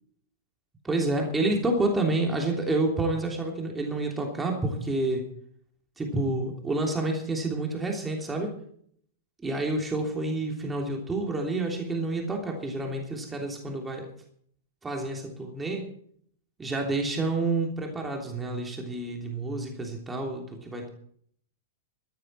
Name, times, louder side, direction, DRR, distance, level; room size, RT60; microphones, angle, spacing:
voice 1, 0.8-5.3 6.0-8.5 9.4-14.1 14.8-15.9 16.6-20.9, right 2 dB, 10° right, 1 dB, 3.2 m, -29 dB
16.5 x 13.0 x 4.7 m, 0.62 s
figure-of-eight pair, 100°, 0 cm